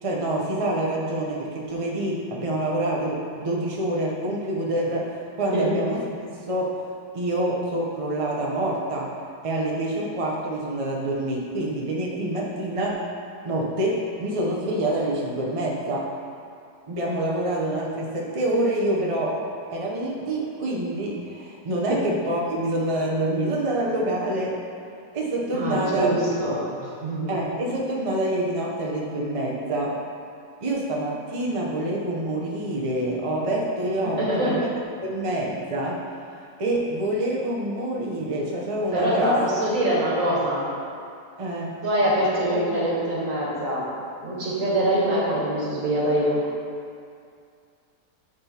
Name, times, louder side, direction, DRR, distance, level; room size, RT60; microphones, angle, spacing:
voice 1, 0.0-6.1 6.5-6.8 7.1-9.1 9.4-13.0 13.4-16.1 16.9-19.4 19.7-24.6 25.1-26.1 27.3-30.0 30.6-34.7 35.0-36.1 36.6-39.4 41.4-41.7, right 1 dB, 35° right, -3 dB, 0.5 m, -26 dB
voice 2, 25.5-27.3 34.0-34.6 38.9-40.7 41.8-43.9 44.2-46.4, right 1 dB, 55° right, -5 dB, 1.8 m, -24 dB
9.4 x 3.8 x 4.3 m, 2.4 s
omnidirectional pair, 1.7 m